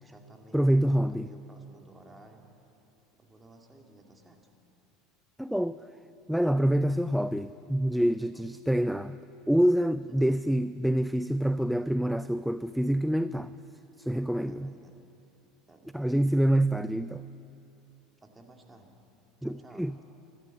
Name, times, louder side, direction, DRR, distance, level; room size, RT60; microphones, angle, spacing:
voice 1, 0.0-2.4 3.1-4.4 8.3-8.6 10.1-10.2 14.5-15.0 15.7-16.2 18.2-19.0 19.4-19.9, right 2 dB, 15° right, 2 dB, 2.1 m, -54 dB
voice 2, 0.5-1.3 5.4-5.8 6.3-9.2 9.5-13.5 14.0-14.7 15.9-17.3 19.4-20.0, right 1 dB, ahead, 14 dB, 0.3 m, -26 dB
14.0 x 11.0 x 9.1 m, 2.8 s
hypercardioid pair, 85°, 0 cm